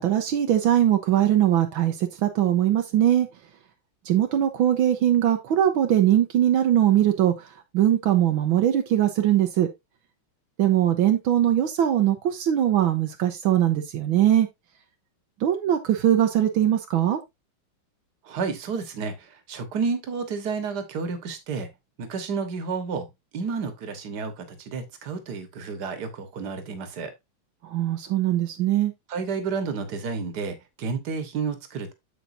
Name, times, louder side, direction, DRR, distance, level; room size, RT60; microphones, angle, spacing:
voice 1, 0.0-3.3 4.0-7.5 7.7-9.7 10.6-14.5 15.4-17.2 27.6-28.9, right 11 dB, 80° right, 1.6 m, -21 dB
voice 2, 18.3-21.7 22.0-23.1 23.3-27.1 29.1-31.9, right 5 dB, 55° right, 1.8 m, -31 dB
8.2 x 7.4 x 2.6 m
omnidirectional pair, 2.2 m